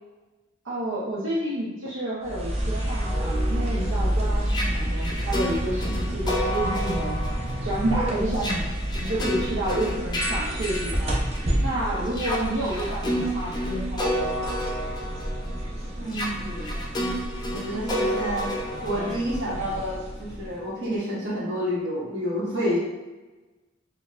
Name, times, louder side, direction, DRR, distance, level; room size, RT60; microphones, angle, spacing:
voice 1, 0.6-7.2 7.6-8.7 9.0-11.2 11.6-14.6, right 1 dB, 75° right, -7 dB, 0.8 m, -30 dB
sound 1, 2.2-20.7, right 1 dB, 30° right, 0.6 m, -30 dB
sound 2, 2.8-11.6 12.1-19.9, equal, 20° left, 0.4 m, -31 dB
voice 2, 5.8-6.2 7.9-8.2 15.9-16.8 17.5-18.5 18.8-22.8, equal, 55° right, -7 dB, 1.4 m, -29 dB
6.2 x 2.2 x 2.5 m, 1.2 s
head